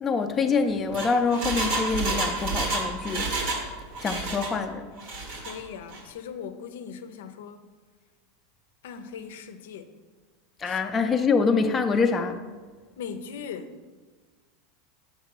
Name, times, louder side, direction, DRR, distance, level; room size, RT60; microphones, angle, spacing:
voice 1, 0.0-3.3 4.0-4.9 10.6-12.4, left 4 dB, 20° left, 0.5 m, -25 dB
Engine, 0.7-3.7 3.9-4.5 5.0-5.5 5.9-6.0, right 2 dB, 65° right, 1.4 m, -29 dB
voice 2, 5.3-7.6 8.8-9.9 10.6-10.8 13.0-13.8, left 6 dB, 85° left, 0.5 m, -39 dB
6.6 x 5.0 x 4.8 m
supercardioid pair, 130°, 0 cm